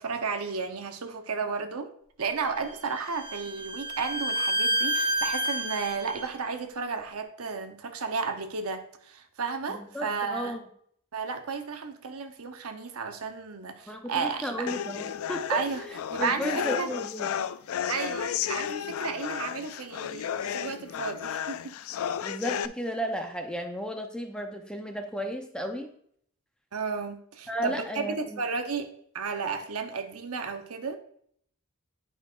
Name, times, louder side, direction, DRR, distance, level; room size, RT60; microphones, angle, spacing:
voice 1, 0.0-1.9 2.2-10.6 11.1-14.7 15.5-15.8 16.1-16.9 17.9-21.7 26.7-31.0, right 5 dB, 85° right, 6 dB, 0.9 m, -33 dB
Bowed string instrument, 2.5-6.3, right 1 dB, 40° left, 1.2 m, -29 dB
voice 2, 9.7-10.6 13.9-17.4 20.4-20.5 22.2-25.9 27.5-28.4, equal, 5° left, 4 dB, 0.7 m, -34 dB
sound 1, 14.7-22.7, left 9 dB, 75° left, 0.3 m, -33 dB
9.7 x 5.5 x 2.5 m, 0.64 s
head